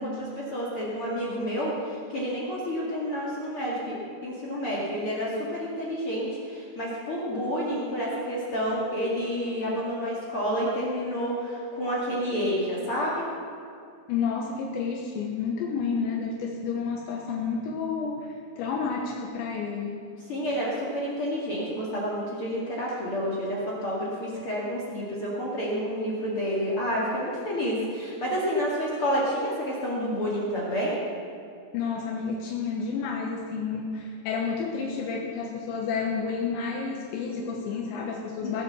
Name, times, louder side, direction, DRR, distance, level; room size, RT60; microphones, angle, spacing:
voice 1, 0.0-4.0 4.2-13.3 20.3-31.0 38.4-38.6, equal, 40° left, -5 dB, 2.2 m, -29 dB
voice 2, 14.1-20.0 31.7-38.6, left 5 dB, 75° left, 0 dB, 3.3 m, -30 dB
19.5 x 7.7 x 7.1 m, 2.4 s
omnidirectional pair, 5.5 m